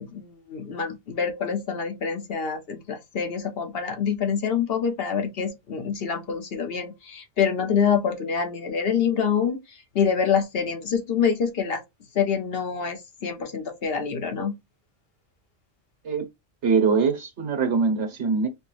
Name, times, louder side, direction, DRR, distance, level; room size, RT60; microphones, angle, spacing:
voice 1, 0.0-11.8 12.1-14.6, left 7 dB, 60° left, 1.0 m, -26 dB
voice 2, 16.6-18.5, right 5 dB, 75° right, 1.3 m, -23 dB
4.4 x 2.3 x 3.0 m
omnidirectional pair, 1.2 m